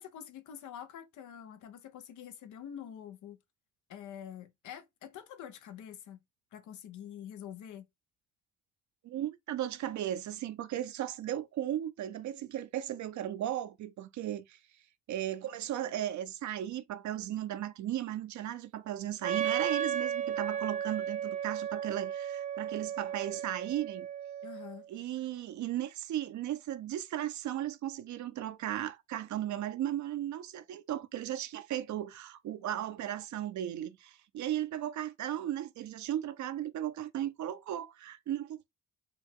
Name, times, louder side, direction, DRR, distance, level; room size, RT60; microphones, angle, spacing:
voice 1, 0.0-3.4 3.9-6.2 6.5-7.9 24.4-24.8, left 9 dB, 80° left, 0.9 m, -46 dB
voice 2, 9.0-14.6 15.1-24.1 24.9-38.7, right 12 dB, 70° right, 0.7 m, -36 dB
Wind instrument woodwind instrument, 19.2-24.9, right 9 dB, 25° right, 0.4 m, -34 dB
5.0 x 2.3 x 3.6 m
cardioid pair, 90°, 30 cm